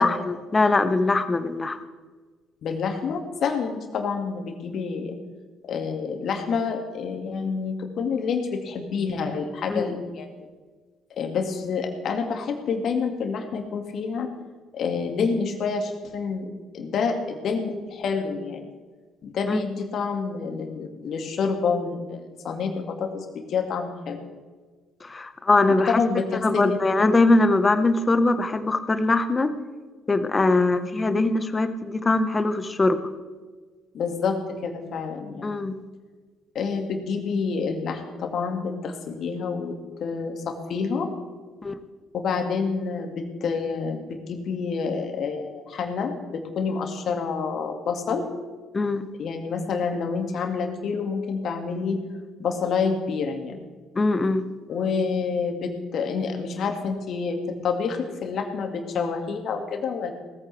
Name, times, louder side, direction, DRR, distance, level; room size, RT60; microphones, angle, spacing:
voice 1, 0.0-1.8 9.7-9.9 19.5-19.6 25.0-26.0 26.4-29.5 30.1-33.0 35.4-35.8 41.6-41.7 48.7-49.1 53.9-54.4, left 2 dB, 30° left, 10 dB, 1.3 m, -21 dB
voice 2, 2.6-5.2 5.6-10.5 11.2-14.3 14.7-18.6 19.2-24.2 25.7-26.8 30.6-30.9 33.9-34.4 34.6-35.6 36.5-39.8 40.0-41.1 42.1-48.2 49.2-52.0 52.4-53.6 54.7-57.4 57.6-60.1, left 5 dB, 60° left, 4 dB, 2.2 m, -28 dB
19.0 x 14.5 x 3.5 m, 1.4 s
hypercardioid pair, 50°, 0 cm